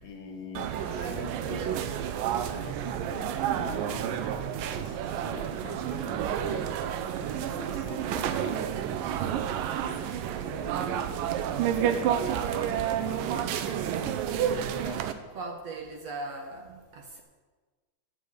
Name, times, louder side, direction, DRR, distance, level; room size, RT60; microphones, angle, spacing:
voice 1, 0.0-0.8 1.1-1.6 2.5-4.1 4.7-6.7 7.6-8.7 9.1-10.0 10.4-11.1 12.4-13.7 14.5-15.0, left 5 dB, 80° left, 3 dB, 3.2 m, -44 dB
sound 1, 0.6-15.1, right 9 dB, 85° right, 2.4 m, -30 dB
voice 2, 0.8-2.0 14.9-15.0 15.3-17.2, right 3 dB, 60° right, 3 dB, 1.9 m, -40 dB
12.0 x 8.3 x 7.9 m, 1.4 s
omnidirectional pair, 3.9 m